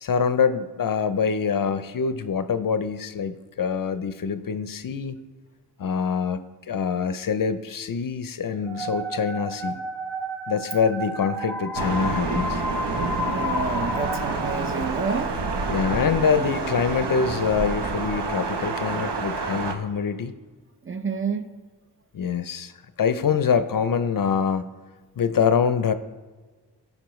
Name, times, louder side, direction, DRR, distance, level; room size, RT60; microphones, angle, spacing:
voice 1, 0.0-5.2 5.8-9.8 10.5-12.6 15.7-20.3 22.1-22.7 23.0-24.6 25.2-25.9, left 6 dB, 55° left, 11 dB, 0.5 m, -25 dB
sound 1, 8.6-15.5, equal, ahead, 1.0 m, -32 dB
Thunder, 11.7-19.7, right 4 dB, 80° right, 0.9 m, -28 dB
voice 2, 13.2-15.3 16.4-16.5 20.8-21.5, right 5 dB, 30° right, 8 dB, 0.6 m, -29 dB
15.0 x 5.3 x 3.1 m, 1.3 s
wide cardioid pair, 90°, 41 cm